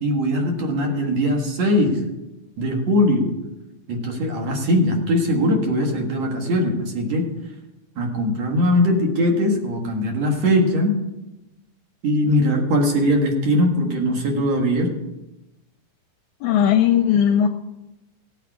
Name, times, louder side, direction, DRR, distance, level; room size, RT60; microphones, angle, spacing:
voice 1, 0.0-2.0 2.6-3.3 3.9-7.3 8.0-11.0 12.0-14.9, left 1 dB, 55° right, 1 dB, 2.8 m, -20 dB
voice 2, 16.4-17.5, left 9 dB, 80° left, 6 dB, 1.8 m, -17 dB
16.5 x 8.4 x 4.8 m, 0.97 s
omnidirectional pair, 3.8 m